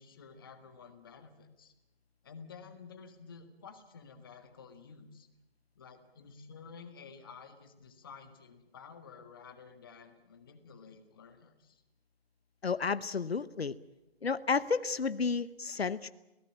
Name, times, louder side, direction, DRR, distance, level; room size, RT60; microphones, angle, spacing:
voice 1, 0.0-1.7 2.2-5.3 5.7-11.8, left 5 dB, 20° left, 7 dB, 1.7 m, -52 dB
voice 2, 12.6-13.8 14.2-16.1, left 5 dB, 75° left, 15 dB, 1.0 m, -31 dB
27.5 x 17.5 x 8.6 m, 0.97 s
figure-of-eight pair, 165°, 31 cm